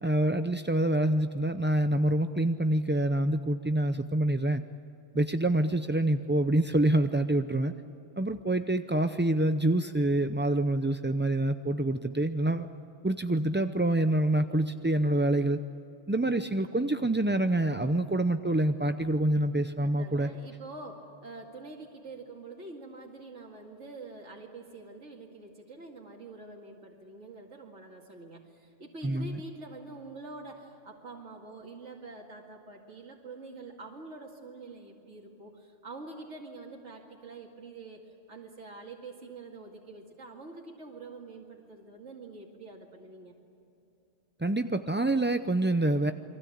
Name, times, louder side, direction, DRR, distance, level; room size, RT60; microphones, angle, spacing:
voice 1, 0.0-4.6 5.1-7.7 8.2-12.7 13.0-15.6 16.1-20.3 29.0-29.4 44.4-46.1, right 1 dB, 15° right, 8 dB, 0.3 m, -26 dB
voice 2, 19.8-43.4, right 3 dB, 75° right, -2 dB, 2.6 m, -46 dB
29.5 x 23.0 x 8.6 m, 2.8 s
omnidirectional pair, 1.2 m